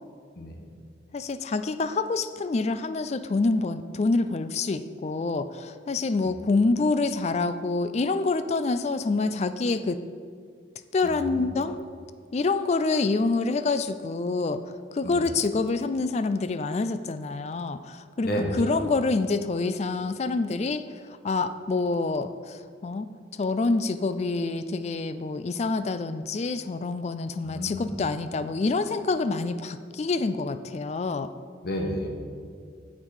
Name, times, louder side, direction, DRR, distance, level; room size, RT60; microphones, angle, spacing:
voice 1, 1.1-10.0 10.9-11.8 12.3-14.6 14.9-20.8 21.1-23.1 23.3-31.3, left 3 dB, 35° left, 12 dB, 0.3 m, -27 dB
voice 2, 11.0-11.5 15.0-15.2 18.2-18.8 27.4-27.9 31.6-32.1, equal, 50° left, 0 dB, 1.3 m, -31 dB
8.6 x 7.4 x 4.8 m, 2.1 s
head